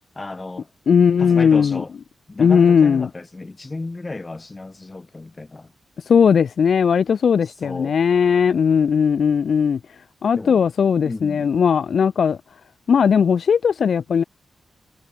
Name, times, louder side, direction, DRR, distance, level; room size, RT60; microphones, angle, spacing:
voice 1, 0.1-0.7 1.2-1.9 2.3-5.7 7.6-7.9 10.3-10.6 11.0-11.5, left 2 dB, 30° left, 6.5 m, -33 dB
voice 2, 0.9-1.8 2.4-3.1 6.1-9.8 10.2-12.4 12.9-14.2, left 6 dB, 70° left, 1.5 m, -17 dB
cardioid pair, 55°, 0 cm